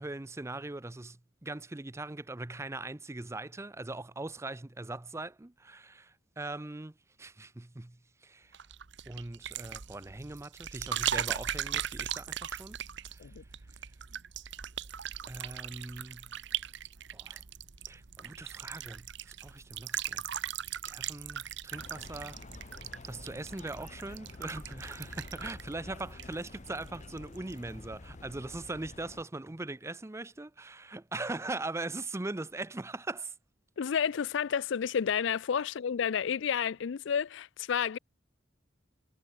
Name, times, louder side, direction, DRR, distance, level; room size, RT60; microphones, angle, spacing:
voice 1, 0.0-8.6 9.1-12.8 13.1-13.3 15.3-16.3 17.1-17.4 17.9-20.2 20.9-22.4 23.0-33.3, right 2 dB, 15° right, 0.5 m, -41 dB
sound 1, 8.5-26.9 27.2-27.6, right 10 dB, 65° right, 1.0 m, -39 dB
sound 2, 21.7-29.2, left 2 dB, 40° left, 0.8 m, -49 dB
voice 2, 33.8-38.0, left 7 dB, 65° left, 0.4 m, -30 dB
head